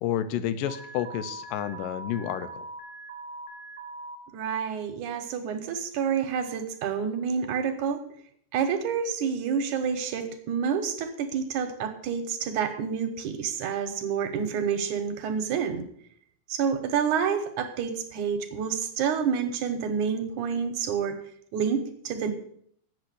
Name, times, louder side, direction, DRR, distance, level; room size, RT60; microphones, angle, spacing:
voice 1, 0.0-2.7, left 10 dB, 75° left, 12 dB, 2.4 m, -30 dB
Alarm, 0.7-4.1, right 2 dB, 20° left, 0.8 m, -42 dB
voice 2, 4.3-8.0 8.5-15.9 16.5-21.2 21.5-22.3, right 7 dB, 70° right, 6 dB, 2.1 m, -28 dB
8.3 x 7.0 x 8.1 m, 0.65 s
omnidirectional pair, 4.1 m